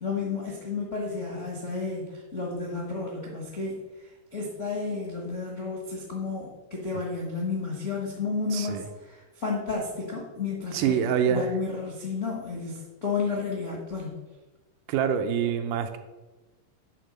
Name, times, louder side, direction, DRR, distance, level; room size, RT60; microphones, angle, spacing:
voice 1, 0.0-14.1, left 4 dB, 55° left, -3 dB, 0.8 m, -32 dB
voice 2, 8.5-8.8 10.7-11.5 14.9-16.0, right 8 dB, 80° right, 7 dB, 2.2 m, -25 dB
9.0 x 4.0 x 6.5 m, 1.2 s
omnidirectional pair, 3.7 m